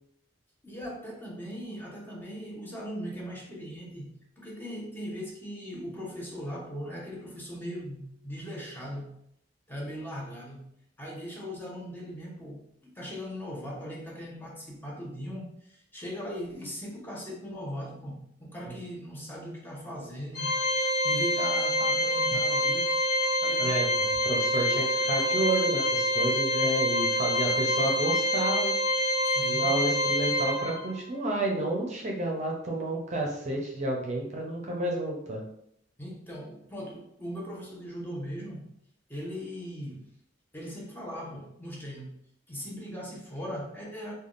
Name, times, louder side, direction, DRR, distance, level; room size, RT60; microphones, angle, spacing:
voice 1, 0.6-9.2 9.7-10.7 11.0-20.6 21.0-23.0 23.4-23.9 26.5-27.0 29.2-29.7 36.0-38.7 39.1-40.0 40.5-42.2 42.5-44.1, equal, 10° left, -4 dB, 0.7 m, -39 dB
Organ, 20.4-31.0, equal, 60° left, 0.8 m, -26 dB
voice 2, 23.6-28.7 29.5-35.4, right 2 dB, 40° right, 0 dB, 0.6 m, -30 dB
3.3 x 2.2 x 2.4 m, 0.72 s
head